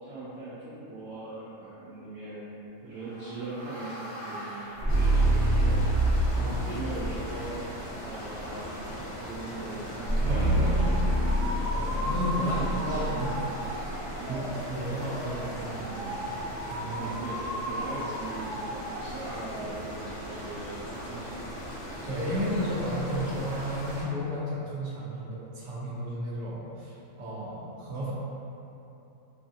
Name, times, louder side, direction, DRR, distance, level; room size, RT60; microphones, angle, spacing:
voice 1, 0.0-2.5 2.8-5.8 6.3-7.6 8.0-11.3 12.4-13.3 14.2-14.5 17.0-21.5, right 2 dB, 90° right, -10 dB, 1.1 m, -40 dB
sound 1, 3.1-6.5 6.9-7.5 10.0-14.1, right 1 dB, 5° left, 1.1 m, -27 dB
sound 2, 4.9-24.0, equal, 45° left, 0.3 m, -39 dB
voice 2, 6.3-6.8 10.3-10.7 11.7-12.6 12.9-13.3 14.2-14.4 14.7-16.4 16.7-17.1 22.1-28.1, equal, 60° right, -6 dB, 1.0 m, -33 dB
sound 3, 10.8-19.6, equal, 80° left, 1.4 m, -37 dB
4.7 x 2.4 x 2.7 m, 2.8 s
omnidirectional pair, 1.5 m